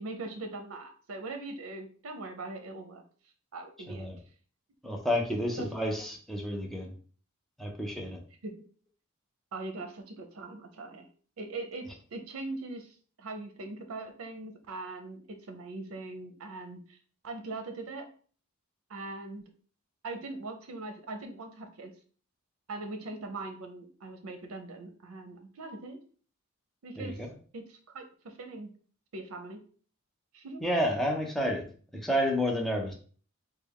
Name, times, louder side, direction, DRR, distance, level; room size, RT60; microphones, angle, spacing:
voice 1, 0.0-3.0 3.5-4.1 5.6-5.7 8.4-8.5 9.5-11.1 11.4-11.9 12.1-17.0 17.2-18.1 18.9-19.4 20.0-21.9 22.7-26.0 26.8-27.3 27.5-28.7 29.1-29.6 30.3-30.6, right 2 dB, 85° right, 5 dB, 0.5 m, -41 dB
voice 2, 4.8-6.9 7.6-8.2 27.0-27.3 30.6-31.6 31.9-32.9, equal, ahead, 0 dB, 0.6 m, -30 dB
3.3 x 2.2 x 3.6 m, 0.43 s
head